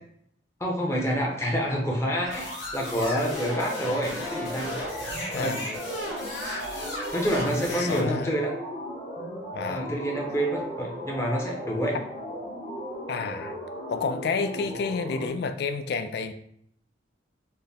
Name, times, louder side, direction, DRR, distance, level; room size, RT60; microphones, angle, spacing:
voice 1, 0.6-4.7 5.3-5.6 7.1-8.5 9.7-12.0, equal, 15° left, 0.6 m, -28 dB
sound 1, 2.2-8.0, left 1 dB, 80° left, 1.4 m, -35 dB
sound 2, 2.9-15.3, equal, 40° left, 0.9 m, -37 dB
voice 2, 5.3-5.6 7.7-8.3 9.5-10.0 13.1-13.6 13.9-16.3, left 4 dB, 60° left, 0.3 m, -30 dB
4.3 x 2.0 x 3.4 m
head